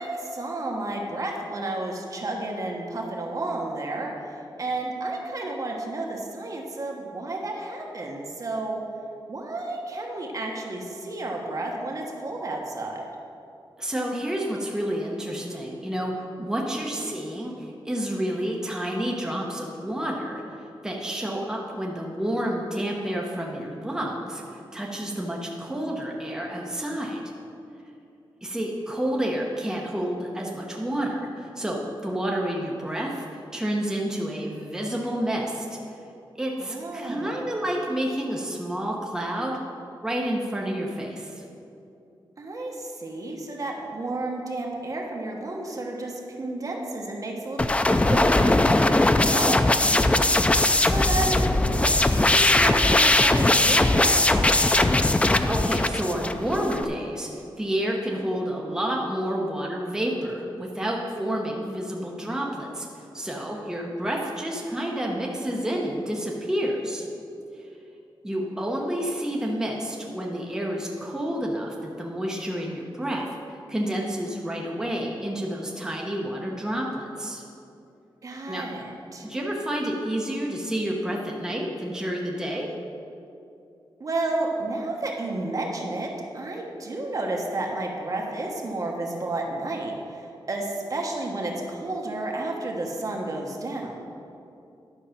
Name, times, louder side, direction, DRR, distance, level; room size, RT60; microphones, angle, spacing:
voice 1, 0.0-8.8 9.3-13.1 17.0-17.1 36.6-37.6 42.4-49.8 50.8-54.9 78.2-79.3 84.0-94.0, right 2 dB, 40° right, 0 dB, 1.2 m, -31 dB
voice 2, 13.8-20.4 20.8-27.2 28.4-35.7 36.4-39.6 40.0-41.4 49.8-50.2 55.2-57.3 57.6-62.9 63.1-67.0 68.2-77.4 78.5-78.7 79.2-82.7, right 1 dB, 5° right, -2 dB, 1.0 m, -29 dB
sound 1, 47.6-56.8, left 2 dB, 15° left, 0.3 m, -20 dB
11.0 x 6.4 x 5.8 m, 2.7 s
wide cardioid pair, 160°, 9 cm